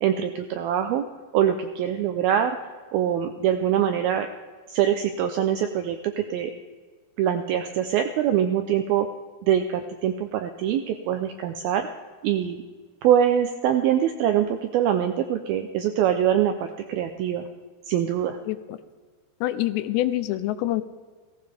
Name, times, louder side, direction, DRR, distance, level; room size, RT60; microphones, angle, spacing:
voice 1, 0.0-1.0 1.3-2.6 2.9-4.3 4.7-6.5 7.2-9.1 9.4-11.9 12.2-12.6 13.0-17.5 17.9-18.4, right 10 dB, 85° right, 7 dB, 2.1 m, -23 dB
voice 2, 18.5-18.8 19.4-20.8, left 14 dB, 85° left, 13 dB, 2.8 m, -26 dB
17.0 x 15.5 x 3.4 m, 1.5 s
omnidirectional pair, 5.0 m